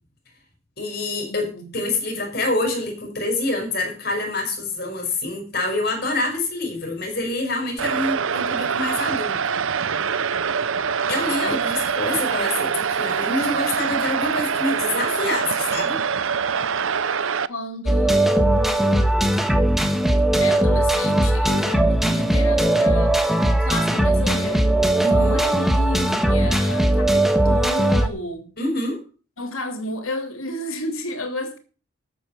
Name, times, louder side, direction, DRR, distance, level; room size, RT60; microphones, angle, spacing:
voice 1, 0.8-9.4 11.1-16.0 25.0-25.4 28.6-29.0, left 2 dB, 50° left, 5.6 m, -26 dB
voice 2, 1.3-1.8 11.4-11.6 17.5-19.9 20.4-24.7 25.1-28.5 29.4-31.6, left 1 dB, 75° left, 3.1 m, -32 dB
sound 1, 7.8-17.5, right 6 dB, 65° right, 0.7 m, -24 dB
sound 2, 17.9-28.1, right 1 dB, ahead, 1.4 m, -19 dB
13.5 x 7.9 x 6.1 m
head